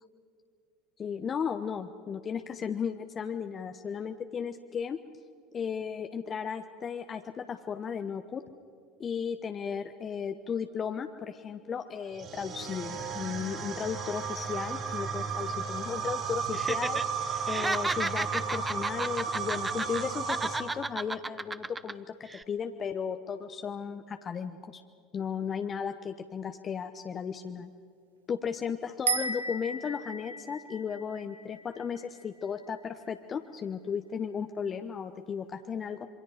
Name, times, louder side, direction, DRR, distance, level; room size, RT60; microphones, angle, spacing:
voice 1, 1.0-5.0 5.5-8.4 9.0-17.0 17.5-24.8 25.1-27.7 28.3-36.1, left 7 dB, 35° left, 7 dB, 1.0 m, -35 dB
sound 1, 12.1-20.6, right 6 dB, 50° right, 6.2 m, -34 dB
Laughter, 16.5-17.0 17.3-20.0 20.3-21.9 22.3-22.4, right 2 dB, 15° right, 0.8 m, -33 dB
sound 2, 29.1-32.5, right 4 dB, 85° right, 1.2 m, -35 dB
27.5 x 23.5 x 5.0 m, 2.4 s
hypercardioid pair, 75°, 0 cm